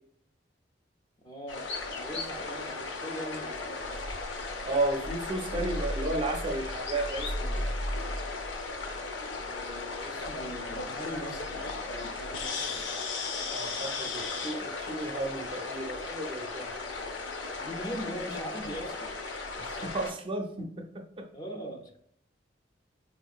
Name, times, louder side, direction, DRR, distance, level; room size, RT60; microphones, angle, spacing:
voice 1, 1.2-1.7 1.9-4.1 9.3-12.1 17.6-19.1 21.3-22.0, equal, 25° left, 3 dB, 0.5 m, -40 dB
sound 1, 1.5-20.1, left 3 dB, 80° left, 0.6 m, -35 dB
voice 2, 4.6-7.7 13.5-16.7 19.6-20.9 21.2-21.3, right 2 dB, 30° right, 3 dB, 0.4 m, -33 dB
4.1 x 2.7 x 2.3 m, 0.66 s
head